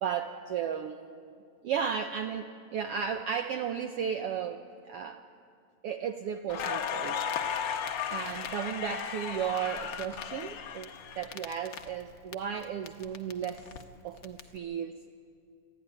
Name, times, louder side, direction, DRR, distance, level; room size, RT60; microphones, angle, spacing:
voice 1, 0.0-1.3 1.6-5.2 5.8-7.2 7.7-10.9 11.2-13.7 14.0-15.0, right 8 dB, 85° right, 7 dB, 1.3 m, -34 dB
Crackle, 6.5-12.3 12.6-14.4, left 7 dB, 85° left, 1.0 m, -35 dB
24.5 x 14.0 x 9.8 m, 2.4 s
omnidirectional pair, 3.6 m